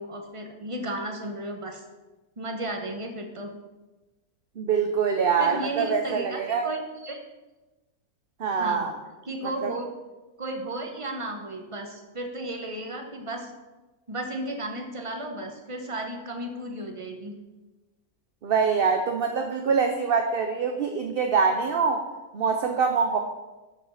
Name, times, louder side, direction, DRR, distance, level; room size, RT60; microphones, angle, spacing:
voice 1, 0.0-1.8 2.4-3.5 5.4-7.2 8.6-8.9 9.2-9.9 10.4-13.5 14.1-17.3, right 1 dB, 20° right, 3 dB, 1.1 m, -34 dB
voice 2, 4.6-6.7 8.4-8.9 9.6-9.7 18.4-22.0 22.3-23.2, right 5 dB, 50° right, 5 dB, 0.7 m, -24 dB
11.0 x 5.3 x 5.6 m, 1.1 s
omnidirectional pair, 1.6 m